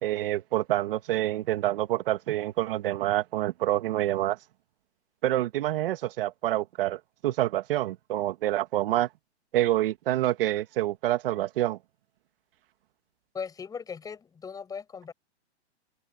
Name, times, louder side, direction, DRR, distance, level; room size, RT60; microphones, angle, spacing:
voice 1, 0.0-4.4 5.2-9.1 9.5-11.8, right 14 dB, 55° right, 2.5 m, -27 dB
voice 2, 13.3-15.1, left 6 dB, 10° left, 7.6 m, -38 dB
hypercardioid pair, 160°, 34 cm